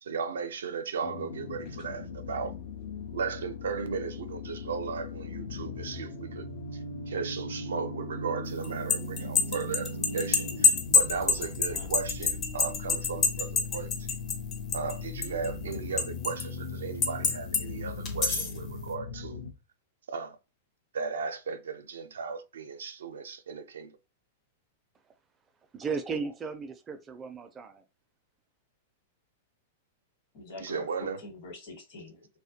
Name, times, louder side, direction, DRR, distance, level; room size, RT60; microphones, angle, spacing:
voice 1, 0.0-2.0 2.3-2.5 3.1-14.2 14.7-19.4 20.1-20.4 20.9-23.9 30.6-31.2, right 5 dB, 85° right, 0.4 m, -36 dB
sound 1, 1.0-19.5, left 3 dB, 80° left, 0.6 m, -38 dB
sound 2, 8.6-15.0 15.2-16.4 17.0-17.6 18.1-18.6, left 4 dB, 35° left, 0.6 m, -26 dB
voice 2, 11.4-11.9 30.3-32.3, left 2 dB, 50° left, 1.1 m, -45 dB
voice 3, 25.7-27.8, right 5 dB, 20° right, 0.4 m, -35 dB
2.2 x 2.1 x 2.7 m
hypercardioid pair, 125°, 0 cm